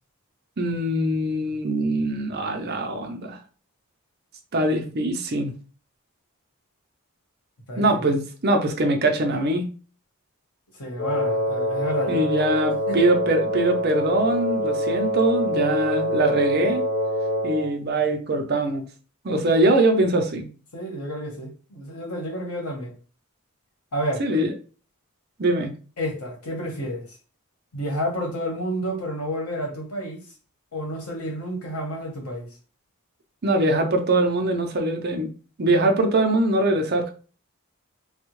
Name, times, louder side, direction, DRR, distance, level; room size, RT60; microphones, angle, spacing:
voice 1, 0.6-3.4 4.5-5.5 7.8-9.7 12.1-16.8 17.4-18.8 19.2-20.5 24.2-24.5 25.4-25.7 33.4-35.3 35.6-37.1, right 2 dB, 45° right, 0.5 m, -22 dB
voice 2, 10.7-12.4 12.9-13.0 20.7-22.9 23.9-24.2 26.0-27.2 27.7-30.2 30.7-32.5, equal, 85° left, 1.2 m, -30 dB
Wind instrument woodwind instrument, 11.0-17.8, equal, 30° left, 1.1 m, -25 dB
3.4 x 2.3 x 3.0 m
head